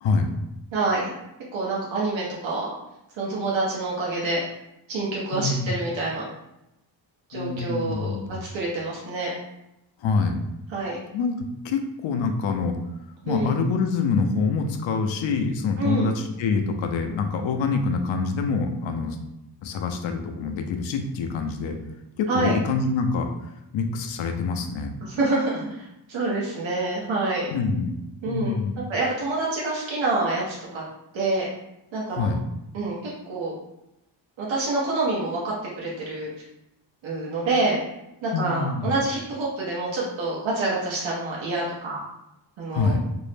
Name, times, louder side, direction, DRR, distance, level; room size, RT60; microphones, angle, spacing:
voice 1, 0.0-0.4 5.3-5.8 7.3-8.4 10.0-10.4 11.1-11.3 11.6-12.8 13.3-19.2 19.6-21.8 22.2-25.0 27.5-27.9 28.3-28.8 32.1-32.4 38.3-39.0 42.7-43.0, left 4 dB, 85° left, 5 dB, 0.5 m, -26 dB
voice 2, 0.7-1.1 1.5-2.7 3.1-4.4 4.9-6.2 7.3-8.2 8.5-9.3 10.7-11.0 13.2-13.6 15.8-16.1 22.3-22.5 25.0-27.5 28.2-30.8 31.1-31.5 31.9-32.3 32.7-33.5 34.4-36.3 37.0-37.8 38.2-42.0 42.6-43.0, right 2 dB, 85° right, -5 dB, 0.8 m, -27 dB
2.6 x 2.0 x 3.2 m, 0.88 s
cardioid pair, 90°, 45 cm